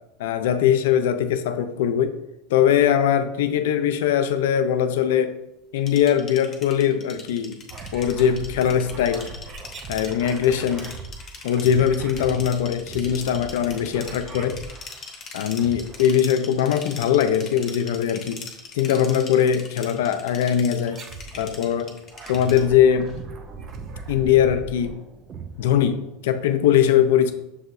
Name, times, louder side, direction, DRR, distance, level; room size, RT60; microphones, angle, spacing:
voice 1, 0.2-2.2 2.5-5.4 5.7-7.6 7.9-9.3 9.9-10.9 11.4-14.6 15.3-18.5 18.7-21.0 21.4-21.9 22.3-23.1 24.1-25.0 25.6-27.3, left 9 dB, 80° left, 10 dB, 0.4 m, -21 dB
sound 1, 5.8-22.6, left 4 dB, 35° left, 0.9 m, -41 dB
sound 2, 7.7-15.1 15.5-16.3 18.0-18.4 19.4-19.6 20.7-21.5 22.0-26.3, right 4 dB, 40° right, 0.6 m, -39 dB
6.4 x 2.7 x 2.5 m, 0.88 s
hypercardioid pair, 100°, 0 cm